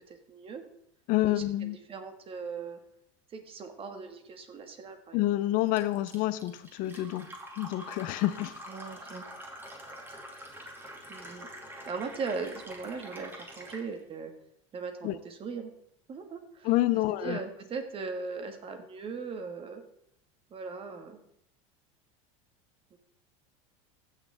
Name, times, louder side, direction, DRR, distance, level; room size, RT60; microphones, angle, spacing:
voice 1, 0.1-0.6 1.3-2.8 3.3-5.3 8.7-9.3 11.1-11.5 11.9-14.3 14.7-15.7 16.1-19.8 20.5-21.2 22.9-23.0, right 4 dB, 35° right, 6 dB, 1.8 m, -39 dB
voice 2, 1.1-1.8 5.1-7.3 7.6-8.6 15.0-15.1 16.6-17.4, left 15 dB, 55° left, 14 dB, 0.6 m, -28 dB
Fill (with liquid), 5.8-13.9, right 1 dB, 10° right, 2.5 m, -46 dB
15.0 x 6.6 x 3.6 m, 0.77 s
supercardioid pair, 110°, 17 cm